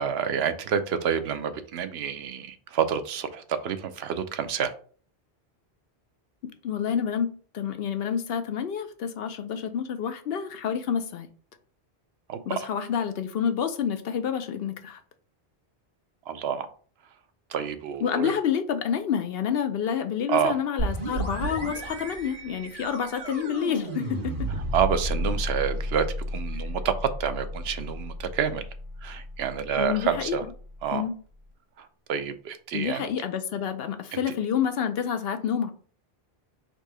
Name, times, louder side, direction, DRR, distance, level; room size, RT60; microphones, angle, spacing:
voice 1, 0.0-4.7 12.3-12.7 16.3-16.7 17.5-18.3 20.3-20.6 24.7-26.0 26.3-28.6 29.0-30.4 30.8-31.0 31.8-33.1 34.1-34.2, right 7 dB, 80° right, 0.8 m, -28 dB
voice 2, 6.6-11.3 12.5-15.0 18.0-24.5 29.8-30.4 30.9-31.2 32.7-35.7, left 8 dB, 70° left, 0.8 m, -28 dB
sound 1, 20.8-30.3, equal, 55° right, 1.5 m, -33 dB
4.0 x 2.7 x 4.7 m
omnidirectional pair, 1.0 m